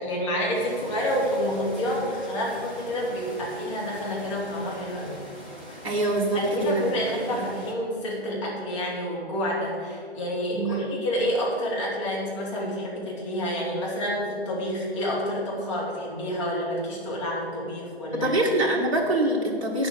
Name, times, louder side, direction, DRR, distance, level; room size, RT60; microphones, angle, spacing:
voice 1, 0.0-5.2 6.3-18.3, equal, 25° left, -4 dB, 2.6 m, -28 dB
sound 1, 0.5-7.7, equal, 10° right, 0.5 m, -42 dB
voice 2, 5.8-7.5 10.5-11.0 18.2-19.9, right 2 dB, 30° right, -2 dB, 1.8 m, -25 dB
9.1 x 7.2 x 6.8 m, 2.3 s
figure-of-eight pair, 150°, 33 cm